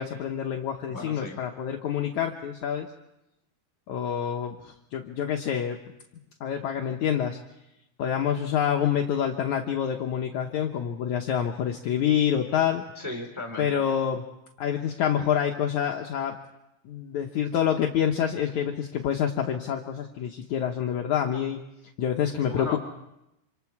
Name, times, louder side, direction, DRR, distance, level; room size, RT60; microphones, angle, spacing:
voice 1, 0.0-2.9 3.9-5.8 6.4-7.4 8.0-12.8 13.6-14.2 14.6-16.4 16.9-21.6 22.0-22.8, left 9 dB, 75° left, 3 dB, 1.8 m, -27 dB
voice 2, 0.9-1.4 13.0-13.8 22.4-22.8, left 2 dB, 5° right, 3 dB, 3.9 m, -36 dB
27.0 x 26.5 x 4.7 m, 0.89 s
omnidirectional pair, 4.7 m